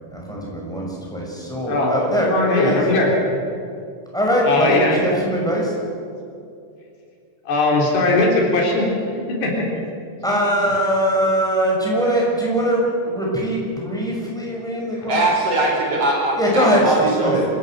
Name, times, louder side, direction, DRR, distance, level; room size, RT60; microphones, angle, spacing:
voice 1, 0.1-2.8 4.1-5.7 10.2-15.2 16.4-17.5, equal, ahead, -3 dB, 5.7 m, -21 dB
voice 2, 2.3-3.1 4.4-5.0 7.5-8.9 9.4-9.6, left 2 dB, 85° left, -1 dB, 6.0 m, -19 dB
voice 3, 15.1-17.3, right 2 dB, 40° right, -2 dB, 5.2 m, -21 dB
26.0 x 15.5 x 7.8 m, 2.5 s
omnidirectional pair, 4.6 m